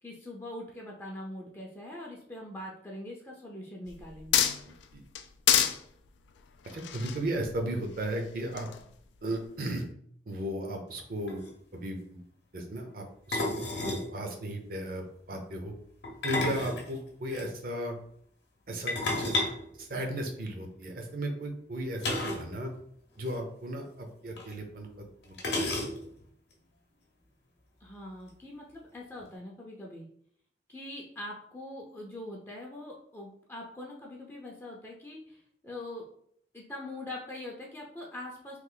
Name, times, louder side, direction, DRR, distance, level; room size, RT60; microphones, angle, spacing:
voice 1, 0.0-4.4 27.8-30.1 30.7-36.0 36.5-38.6, left 1 dB, 15° left, -2 dB, 0.5 m, -43 dB
sound 1, 3.9-4.8 5.1-5.8 6.6-8.1 8.6-8.8, left 9 dB, 90° left, 0.3 m, -27 dB
voice 2, 4.7-5.0 6.7-8.7 9.2-9.8 10.3-11.4 11.7-12.2 12.5-15.7 16.2-17.9 18.7-19.4 19.8-22.7 23.2-25.7, right 1 dB, 55° right, 3 dB, 0.6 m, -36 dB
sound 2, 11.0-11.1 11.3-11.5 13.3-14.1 16.0-17.4 18.9-20.5 22.0-22.5 22.8-22.9 23.2-23.3 24.4-24.5 25.4-26.2, left 2 dB, 70° left, 0.8 m, -32 dB
3.1 x 2.4 x 3.8 m, 0.65 s
head